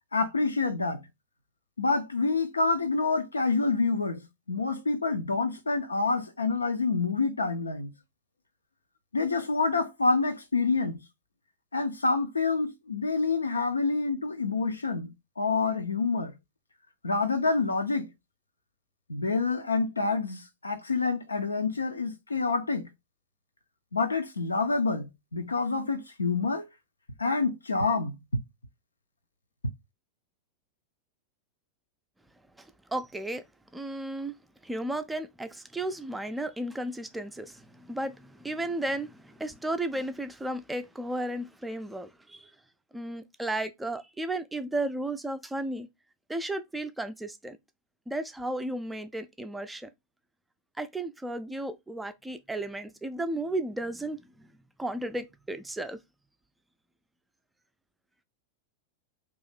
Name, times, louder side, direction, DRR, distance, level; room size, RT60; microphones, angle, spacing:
voice 1, 0.1-1.0 1.8-7.9 9.1-11.0 11.7-16.3 17.0-18.1 19.1-22.9 23.9-26.7 27.2-28.4, left 3 dB, 80° left, 0.5 m, -27 dB
voice 2, 32.6-33.4 33.7-34.4 34.6-42.5 42.9-45.9 46.3-47.6 48.1-49.9 50.8-54.5 54.8-56.0, right 1 dB, 5° right, 0.4 m, -34 dB
2.7 x 2.4 x 3.9 m
figure-of-eight pair, 90°, 0 cm